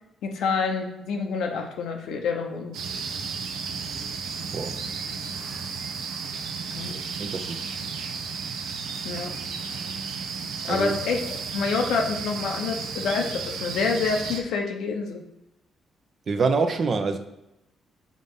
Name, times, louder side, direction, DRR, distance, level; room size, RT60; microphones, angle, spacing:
voice 1, 0.2-2.8 6.7-7.0 9.0-9.3 10.7-11.2 11.5-15.2, left 5 dB, 80° left, 2 dB, 1.0 m, -27 dB
sound 1, 2.7-14.4, right 5 dB, 85° right, 0.7 m, -33 dB
voice 2, 6.9-7.6 10.6-10.9 16.3-17.2, right 4 dB, 45° right, 6 dB, 0.8 m, -26 dB
5.0 x 4.0 x 5.6 m, 0.89 s
cardioid pair, 90°, 0 cm